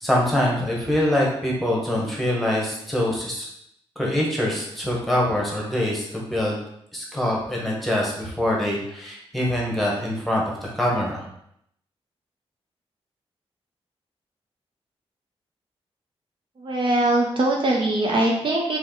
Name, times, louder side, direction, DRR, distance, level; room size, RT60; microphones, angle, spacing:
voice 1, 0.0-3.5 4.0-6.6 6.9-10.4 10.7-11.2, left 1 dB, ahead, -3 dB, 1.1 m, -24 dB
voice 2, 16.6-18.8, right 1 dB, 50° right, -1 dB, 0.6 m, -21 dB
3.3 x 2.5 x 3.8 m, 0.74 s
cardioid pair, 95°, 11 cm